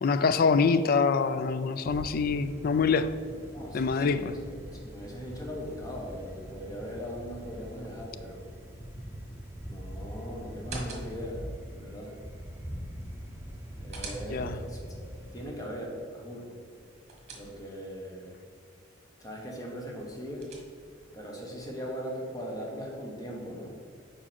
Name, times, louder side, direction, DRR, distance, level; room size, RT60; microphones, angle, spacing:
voice 1, 0.0-3.1 3.7-4.3 14.3-14.6, left 5 dB, 50° left, 13 dB, 0.3 m, -25 dB
sound 1, 1.8-15.5, equal, 10° right, 1.0 m, -43 dB
voice 2, 3.5-8.5 9.6-11.4 11.7-12.2 13.8-15.1 15.3-16.5 17.3-18.3 19.2-20.5 21.1-23.8, equal, 20° left, -1 dB, 1.2 m, -40 dB
sound 2, 10.5-11.4 13.4-14.7 16.7-17.9 19.9-21.0, right 2 dB, 35° right, 1.3 m, -45 dB
4.9 x 4.8 x 5.8 m, 2.3 s
head